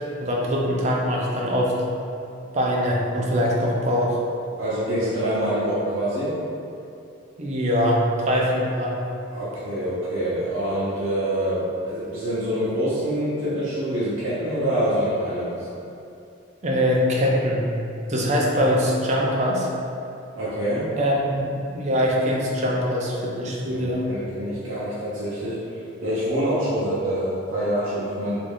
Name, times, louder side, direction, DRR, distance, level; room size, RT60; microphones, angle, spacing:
voice 1, 0.2-1.8 2.5-4.2 7.4-9.1 16.6-17.7 18.1-19.7 21.0-24.1, equal, 35° right, -3 dB, 0.4 m, -22 dB
voice 2, 4.6-6.3 9.3-15.7 20.4-20.9 23.7-25.6 26.0-28.4, equal, 75° right, -11 dB, 0.7 m, -26 dB
3.1 x 2.6 x 3.5 m, 2.6 s
head